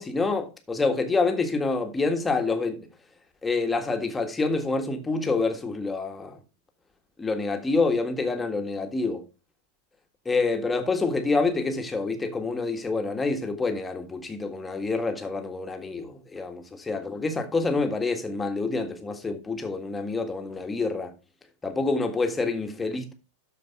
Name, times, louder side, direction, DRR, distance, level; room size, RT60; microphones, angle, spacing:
voice 1, 0.0-2.9 3.4-6.4 7.2-9.3 10.2-21.1 21.6-23.1, left 3 dB, 10° left, 1.7 m, -27 dB
12.5 x 4.6 x 4.7 m
figure-of-eight pair, 90°, 0 cm